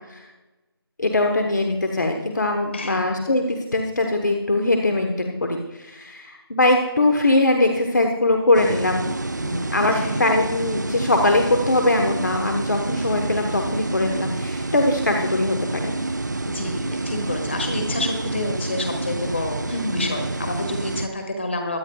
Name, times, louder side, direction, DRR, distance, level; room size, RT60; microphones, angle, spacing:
voice 1, 1.0-9.1 9.4-15.6 15.8-15.9 19.7-20.0, left 2 dB, 45° left, 3 dB, 1.2 m, -21 dB
voice 2, 2.7-3.1 9.9-10.2 16.5-21.8, left 2 dB, 30° left, 5 dB, 1.6 m, -29 dB
sound 1, 8.5-21.1, right 2 dB, 45° right, 0.6 m, -28 dB
22.0 x 9.3 x 2.4 m, 1.1 s
figure-of-eight pair, 175°, 13 cm